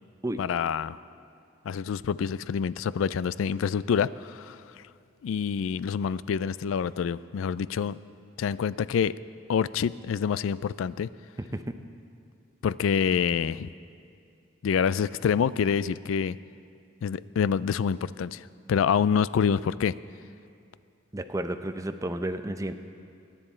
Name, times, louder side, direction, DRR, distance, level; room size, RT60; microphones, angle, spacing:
voice 1, 0.4-1.0 1.7-4.6 5.2-8.0 8.4-9.1 9.5-11.1 12.6-13.7 14.6-16.4 17.0-19.9, left 7 dB, 80° left, 18 dB, 0.3 m, -27 dB
voice 2, 11.4-11.7 21.1-22.7, right 1 dB, 15° right, 9 dB, 0.5 m, -32 dB
22.5 x 10.0 x 4.3 m, 2.4 s
head